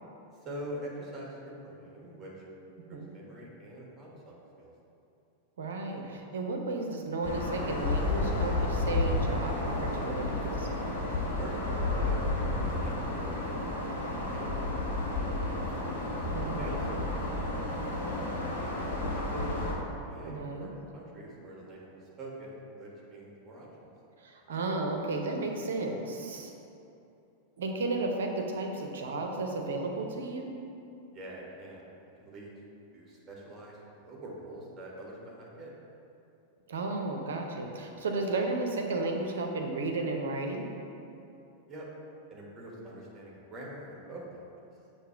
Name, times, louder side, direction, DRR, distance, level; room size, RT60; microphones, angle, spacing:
voice 1, 0.4-2.3 2.9-4.7 11.4-12.9 13.2-13.5 13.9-15.0 16.4-17.6 17.9-19.0 19.3-19.7 20.1-23.9 31.1-31.9 32.2-32.5 32.9-35.7 41.7-41.9 42.3-44.5, right 1 dB, 20° right, -3 dB, 1.4 m, -44 dB
voice 2, 5.6-10.7 16.3-16.8 20.2-20.7 24.2-26.5 27.6-30.5 36.7-40.6, right 2 dB, 65° right, 2 dB, 0.7 m, -33 dB
sound 1, 7.2-19.7, left 2 dB, 70° left, 1.3 m, -31 dB
6.7 x 2.9 x 5.7 m, 2.7 s
figure-of-eight pair, 90°, 0 cm